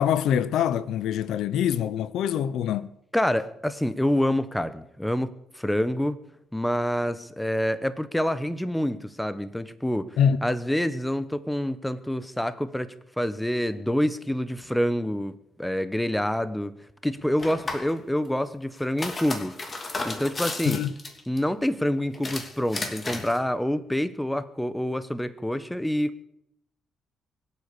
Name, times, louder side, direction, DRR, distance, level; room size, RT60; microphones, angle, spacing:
voice 1, 0.0-2.9 10.2-10.4 20.7-20.9, left 9 dB, 80° left, 0.7 m, -24 dB
voice 2, 3.1-6.2 6.5-10.1 10.4-12.9 13.2-16.7 17.0-19.6 20.0-20.8 21.3-26.2, equal, 5° left, 1.2 m, -27 dB
sound 1, 17.4-17.9 18.8-21.4 22.1-23.4, left 2 dB, 30° left, 2.9 m, -33 dB
23.5 x 8.5 x 6.9 m
cardioid pair, 90°, 0 cm